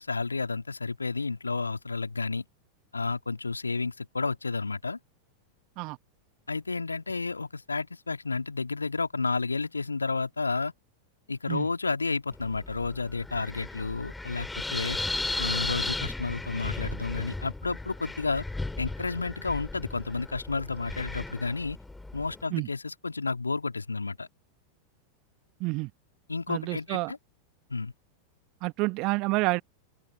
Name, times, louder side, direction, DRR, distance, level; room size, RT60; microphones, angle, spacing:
voice 1, 0.0-2.4 2.9-5.0 6.5-10.7 11.3-15.0 15.4-18.5 18.8-21.8 22.1-24.3 26.3-27.2 27.7-27.9, left 4 dB, 80° left, 2.7 m, -31 dB
Wind, 12.3-22.4, left 2 dB, 5° left, 3.1 m, -36 dB
voice 2, 25.6-25.9 26.5-27.1 28.6-29.6, right 25 dB, 40° right, 1.4 m, -28 dB
figure-of-eight pair, 90°, 0 cm